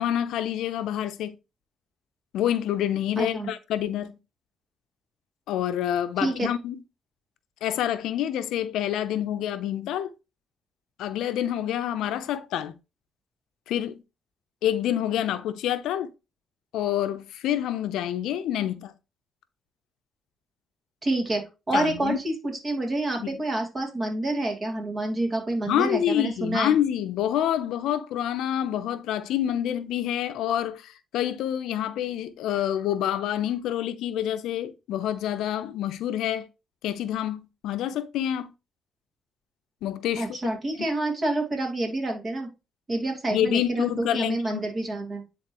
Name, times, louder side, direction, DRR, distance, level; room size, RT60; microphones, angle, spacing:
voice 1, 0.0-1.3 2.3-4.2 5.5-6.8 7.6-10.1 11.0-12.7 13.7-14.0 14.6-16.1 16.7-18.9 21.7-22.2 23.2-23.4 25.7-36.5 36.8-38.5 39.8-40.5 43.3-44.6, left 11 dB, 85° left, 0.6 m, -27 dB
voice 2, 3.2-3.5 6.2-6.5 21.0-26.8 40.2-42.5 42.9-45.2, right 2 dB, 30° right, 2.8 m, -28 dB
9.6 x 3.8 x 3.0 m
cardioid pair, 90°, 0 cm